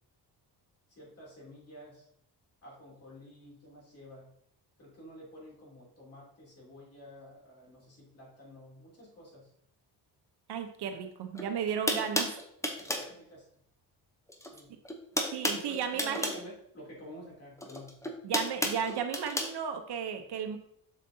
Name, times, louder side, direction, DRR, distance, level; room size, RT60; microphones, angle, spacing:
voice 1, 0.9-2.1 2.6-4.3 4.8-9.5 11.7-11.8 12.8-13.4 14.4-14.7 15.4-18.0, equal, 35° left, -4 dB, 3.0 m, -50 dB
voice 2, 10.5-12.4 15.3-16.3 18.2-20.6, right 7 dB, 65° right, 6 dB, 0.9 m, -34 dB
sound 1, 11.4-11.5 11.9-13.1 14.3-14.6 14.9-16.4 17.6-19.5, equal, 5° left, 0.7 m, -32 dB
7.4 x 6.6 x 2.8 m, 0.69 s
cardioid pair, 150°, 42 cm